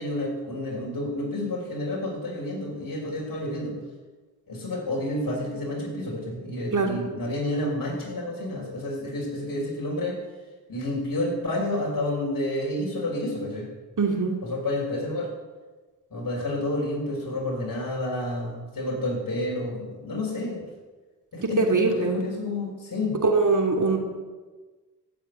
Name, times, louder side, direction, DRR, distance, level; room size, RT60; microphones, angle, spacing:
voice 1, 0.0-3.8 4.5-10.2 10.7-13.7 14.4-15.3 16.1-20.6 21.3-23.2, left 1 dB, 55° left, -2 dB, 5.7 m, -30 dB
voice 2, 14.0-14.3 21.4-22.2 23.2-24.0, right 3 dB, 45° right, 1 dB, 3.0 m, -22 dB
15.0 x 7.4 x 9.5 m, 1.3 s
supercardioid pair, 50°, 41 cm